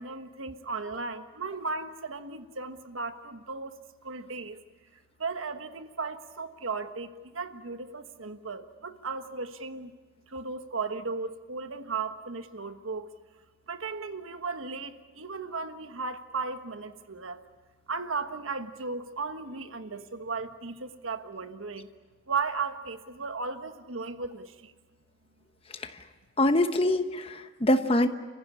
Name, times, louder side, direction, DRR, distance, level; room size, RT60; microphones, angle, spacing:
voice 1, 0.0-3.8 4.0-4.6 5.2-9.9 10.3-13.1 13.7-17.4 17.9-21.9 22.3-24.7, right 4 dB, 85° right, 9 dB, 1.4 m, -36 dB
voice 2, 26.4-28.1, left 1 dB, 30° left, 9 dB, 1.0 m, -24 dB
28.5 x 15.5 x 9.8 m, 1.4 s
head